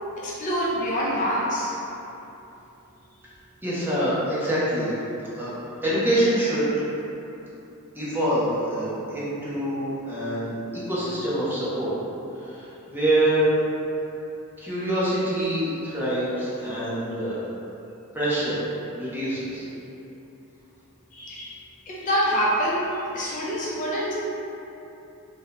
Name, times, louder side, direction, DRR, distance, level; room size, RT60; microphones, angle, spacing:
voice 1, 0.2-1.7 21.1-21.6 21.9-22.9 23.1-24.1, equal, 35° left, -6 dB, 0.4 m, -25 dB
voice 2, 3.6-4.9 5.3-5.5 5.8-6.9 7.9-11.9 12.3-13.6 14.6-17.4 18.1-18.6 18.9-19.7, right 1 dB, 10° right, -9 dB, 0.6 m, -25 dB
2.7 x 2.1 x 3.9 m, 2.9 s
head